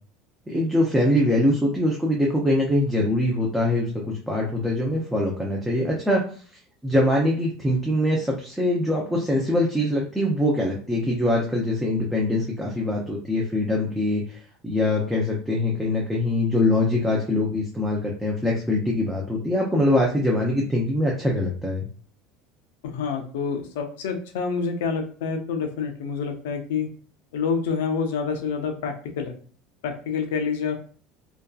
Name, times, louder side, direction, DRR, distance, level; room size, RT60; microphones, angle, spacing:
voice 1, 0.5-3.9 4.3-6.2 6.8-14.4 14.6-21.8, left 1 dB, 5° right, -2 dB, 0.5 m, -23 dB
voice 2, 22.8-26.9 27.3-29.3 29.8-30.8, left 5 dB, 85° left, 5 dB, 0.5 m, -27 dB
2.5 x 2.3 x 2.3 m, 0.43 s
supercardioid pair, 130°, 0 cm